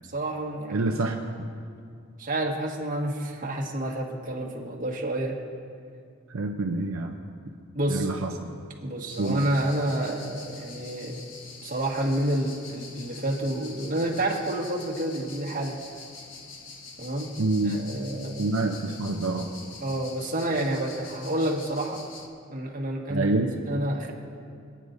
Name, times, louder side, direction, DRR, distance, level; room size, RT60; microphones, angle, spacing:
voice 1, 0.0-0.9 2.2-5.3 7.7-8.1 8.8-11.2 11.6-15.8 17.0-17.3 17.6-18.6 19.8-22.0 22.5-24.1, right 1 dB, 40° right, -1 dB, 1.7 m, -29 dB
voice 2, 0.7-1.1 6.3-7.2 7.9-8.3 9.2-9.4 17.4-17.8 18.4-19.5 23.1-23.5, right 2 dB, 75° right, 2 dB, 0.7 m, -26 dB
sound 1, 9.1-22.3, left 4 dB, 60° left, 1.2 m, -45 dB
27.5 x 9.7 x 2.7 m, 2.3 s
head